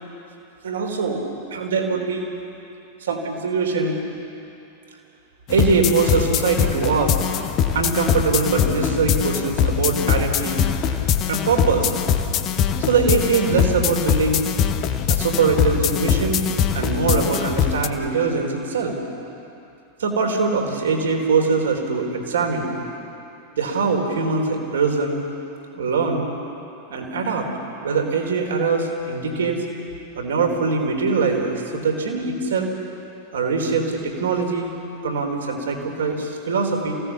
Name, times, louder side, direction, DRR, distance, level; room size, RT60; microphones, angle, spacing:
voice 1, 0.6-1.2 1.5-2.3 3.0-4.0 5.5-7.1 7.7-10.6 11.3-11.9 12.8-14.4 15.1-19.0 20.0-22.7 23.6-25.2 25.7-26.2 26.9-27.5 27.8-29.6 30.2-32.7 33.3-34.7 35.0-36.9, right 4 dB, 65° right, 2 dB, 3.6 m, -22 dB
sound 1, 5.5-17.9, left 8 dB, 35° left, 1.2 m, -22 dB
28.0 x 17.0 x 7.2 m, 2.8 s
figure-of-eight pair, 90°, 0 cm